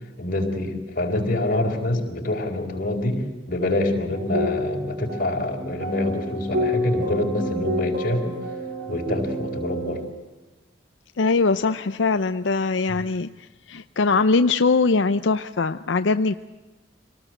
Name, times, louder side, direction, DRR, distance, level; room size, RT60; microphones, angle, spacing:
voice 1, 0.2-8.3 8.9-10.0 12.9-13.0, left 1 dB, 50° left, 0 dB, 4.8 m, -26 dB
sound 1, 4.1-10.1, equal, 65° right, 4.8 m, -29 dB
voice 2, 11.2-16.3, left 4 dB, 80° left, 10 dB, 0.7 m, -21 dB
26.5 x 19.0 x 7.9 m, 1.2 s
head